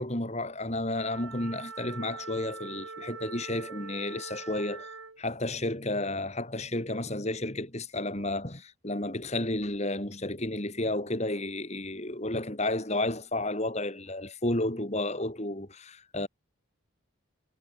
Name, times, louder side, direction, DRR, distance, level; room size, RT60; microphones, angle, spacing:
voice 1, 0.0-4.9 5.2-16.3, left 1 dB, 30° left, 3.0 m, -32 dB
Wind instrument woodwind instrument, 0.9-5.2, right 4 dB, 75° right, 7.2 m, -43 dB
head